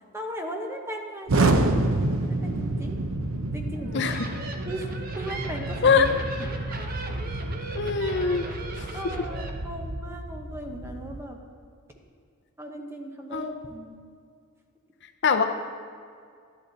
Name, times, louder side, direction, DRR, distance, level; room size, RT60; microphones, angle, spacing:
voice 1, 0.1-1.8 2.2-3.0 3.5-4.9 5.1-6.0 6.4-6.5 8.9-11.4 12.6-14.0, right 1 dB, 10° right, 2 dB, 0.9 m, -37 dB
Explosion, 1.3-11.2, right 2 dB, 70° right, 0.7 m, -29 dB
sound 1, 3.7-9.5, right 2 dB, 40° right, 0.9 m, -39 dB
voice 2, 3.9-4.3 5.8-6.1 7.7-8.5 8.8-8.9 13.3-13.5 15.2-15.4, left 5 dB, 55° left, 6 dB, 0.6 m, -22 dB
12.0 x 10.5 x 4.1 m, 2.2 s
head